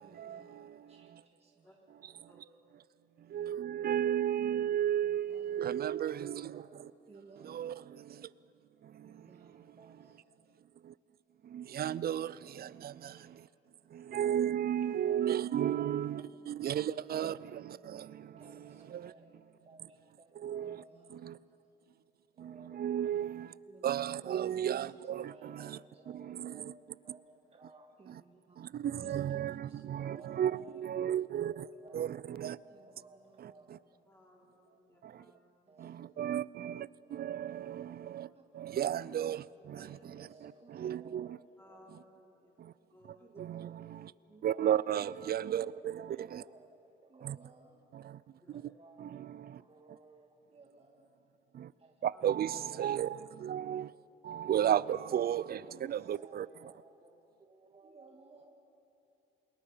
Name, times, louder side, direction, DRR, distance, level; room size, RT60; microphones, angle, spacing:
voice 1, 0.0-1.8 5.0-6.2 6.5-6.7 7.1-8.2 9.0-10.2 12.3-12.7 13.0-13.4 14.1-14.4 15.0-16.2 16.6-16.7 17.7-21.4 22.3-23.1 23.7-24.3 24.6-34.1 35.7-36.0 37.0-37.8 38.3-38.4 40.0-41.8 43.2-43.7 44.3-47.9 48.5-51.1 51.8-52.3 52.7-53.1 53.7-53.8 54.3-58.5, right 2 dB, 30° right, 1.8 m, -59 dB
voice 2, 3.3-6.5 7.5-7.7 11.5-12.3 12.6-12.7 14.1-17.4 20.4-20.8 22.7-23.5 23.8-25.3 25.6-25.8 26.4-26.5 28.8-31.6 31.9-32.6 36.2-36.8 37.1-37.9 38.1-38.3 38.6-39.4 40.8-41.3 43.4-43.7 44.4-46.0 46.3-46.4 47.3-47.4 52.0-53.2 53.4-53.9 54.3-55.6 55.9-56.5, right 10 dB, 50° right, 0.5 m, -32 dB
voice 3, 34.0-35.4 35.8-35.9 38.2-38.4 39.7-39.9 41.6-42.6 42.9-43.3 48.4-48.7 52.1-52.4, left 1 dB, 10° left, 3.8 m, -62 dB
27.5 x 21.0 x 5.7 m
cardioid pair, 90°, 20 cm